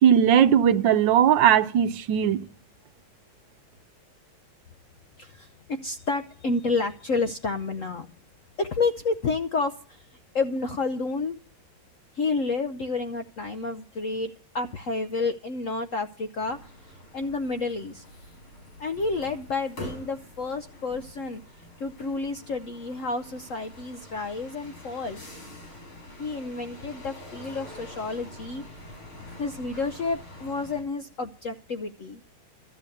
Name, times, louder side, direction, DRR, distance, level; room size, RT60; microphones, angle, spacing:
voice 1, 0.0-2.4, right 9 dB, 70° right, 1.4 m, -19 dB
voice 2, 5.2-8.1 8.6-10.1 10.3-11.4 12.1-18.0 18.8-21.4 21.8-25.3 26.2-28.6 29.4-32.2, left 3 dB, 65° left, 0.8 m, -30 dB
sound 1, 16.4-30.8, left 1 dB, 85° left, 6.3 m, -45 dB
13.5 x 7.8 x 8.4 m
omnidirectional pair, 2.3 m